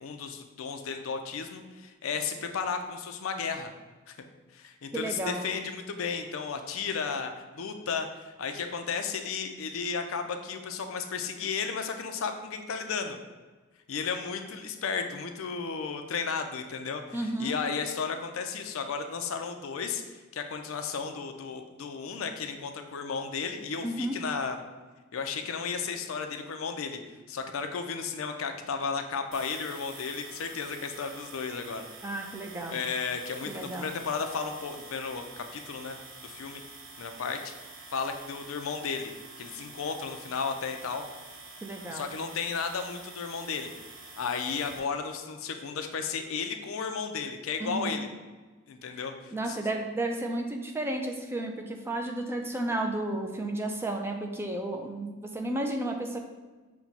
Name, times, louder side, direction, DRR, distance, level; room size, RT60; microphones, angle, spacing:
voice 1, 0.0-3.7 4.1-4.2 4.5-13.2 13.9-24.6 25.1-27.0 27.3-31.9 32.7-36.0 36.2-36.6 37.0-37.5 37.9-39.1 39.4-41.0 41.9-43.7 44.2-48.1 48.7-49.6, left 5 dB, 80° left, 6 dB, 0.5 m, -34 dB
voice 2, 4.9-5.5 17.1-17.6 23.8-24.2 32.0-32.9 33.5-33.9 41.6-42.0 47.6-47.9 49.3-56.2, right 1 dB, 10° right, 2 dB, 0.4 m, -32 dB
sound 1, 29.3-44.8, right 3 dB, 65° right, 0.8 m, -47 dB
5.9 x 2.2 x 4.0 m, 1.3 s
head